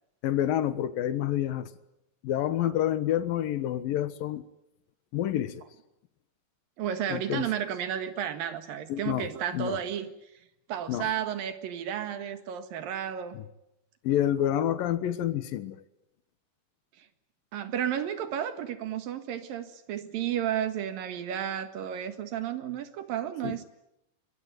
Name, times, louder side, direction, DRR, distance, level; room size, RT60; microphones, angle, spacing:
voice 1, 0.2-1.7 2.2-4.4 5.1-5.6 7.1-7.5 8.9-9.8 10.9-11.1 13.3-13.4 14.0-15.8 23.4-23.6, left 11 dB, 90° left, 13 dB, 3.0 m, -28 dB
voice 2, 6.8-10.1 10.7-13.4 17.0-17.1 17.5-23.6, right 9 dB, 85° right, 9 dB, 3.5 m, -32 dB
25.0 x 23.5 x 9.2 m, 0.85 s
omnidirectional pair, 3.9 m